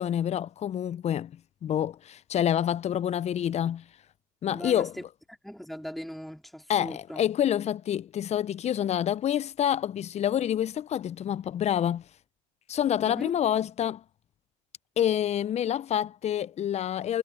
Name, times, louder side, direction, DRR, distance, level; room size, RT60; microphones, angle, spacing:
voice 1, 0.0-3.8 4.4-5.0 6.7-12.1 12.7-14.0 15.0-17.2, left 10 dB, 40° left, 1.0 m, -27 dB
voice 2, 4.5-4.9 5.4-7.2 13.0-13.3, equal, ahead, 3.6 m, -39 dB
hypercardioid pair, 75°, 18 cm